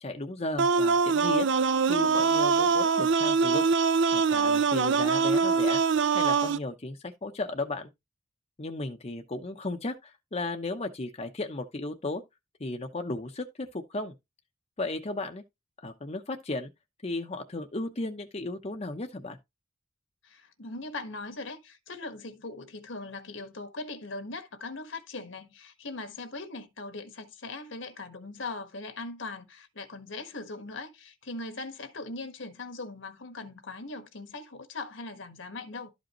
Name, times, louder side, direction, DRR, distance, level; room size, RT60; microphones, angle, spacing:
voice 1, 0.0-3.6 4.1-5.8 6.1-7.9 8.6-12.2 12.6-14.1 14.8-15.4 15.8-16.7 17.0-19.4, left 2 dB, 35° left, 0.8 m, -35 dB
sound 1, 0.6-6.6, right 5 dB, 65° right, 0.5 m, -23 dB
voice 2, 20.2-35.9, left 3 dB, 75° left, 1.5 m, -40 dB
12.5 x 5.1 x 3.0 m
head